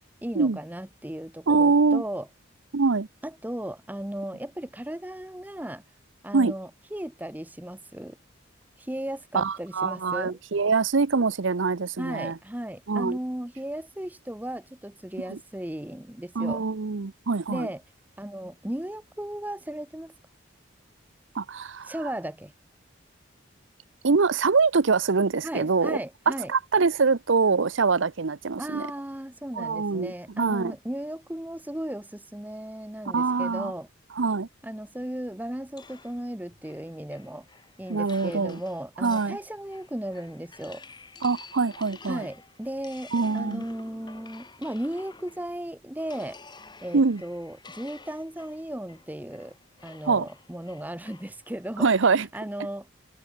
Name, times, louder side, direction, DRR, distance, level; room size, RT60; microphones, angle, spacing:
voice 1, 0.2-2.3 3.2-5.8 6.2-8.2 8.8-10.4 12.0-16.6 17.5-17.8 18.2-20.1 21.8-22.5 25.4-26.5 28.6-33.9 34.6-37.4 37.8-40.8 42.1-46.4 46.8-49.5 49.8-51.9 52.3-52.9, right 1 dB, 10° right, 0.7 m, -36 dB
voice 2, 1.5-2.0 2.7-3.1 6.3-6.5 9.3-12.4 12.9-13.2 15.3-15.4 16.4-17.7 21.3-21.9 24.0-26.0 26.3-28.9 29.6-30.7 33.1-33.7 34.2-34.5 37.9-38.6 39.0-39.4 41.2-42.3 43.1-43.6 46.9-47.2 50.1-50.3 51.8-52.3, right 4 dB, 70° right, 0.7 m, -24 dB
sound 1, 35.8-45.6 46.0-52.2, left 4 dB, 20° left, 3.2 m, -51 dB
head